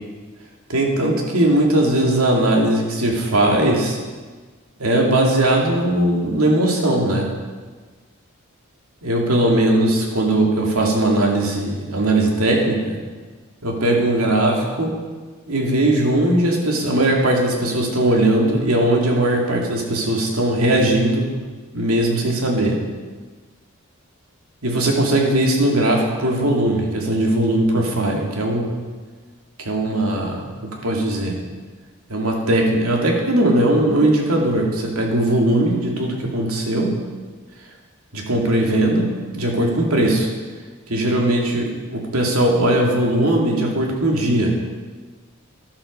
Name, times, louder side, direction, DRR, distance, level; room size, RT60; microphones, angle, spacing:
voice 1, 0.7-4.0 4.8-7.3 9.0-13.0 13.6-14.9 15.5-21.3 21.7-22.8 24.6-28.7 29.6-30.4 30.8-31.4 32.1-36.9 38.1-40.3 40.9-44.5, right 1 dB, 80° right, 0 dB, 2.6 m, -19 dB
12.5 x 12.0 x 5.5 m, 1.4 s
head